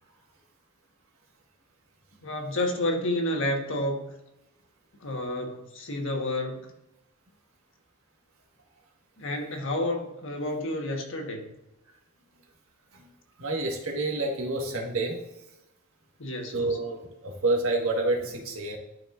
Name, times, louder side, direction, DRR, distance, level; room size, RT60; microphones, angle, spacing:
voice 1, 2.2-4.1 5.0-6.6 9.2-11.5 16.2-16.8, left 1 dB, 65° left, 3 dB, 1.4 m, -30 dB
voice 2, 13.4-15.2 16.5-18.8, right 2 dB, 75° right, 1 dB, 1.7 m, -28 dB
12.0 x 4.6 x 2.6 m, 0.91 s
head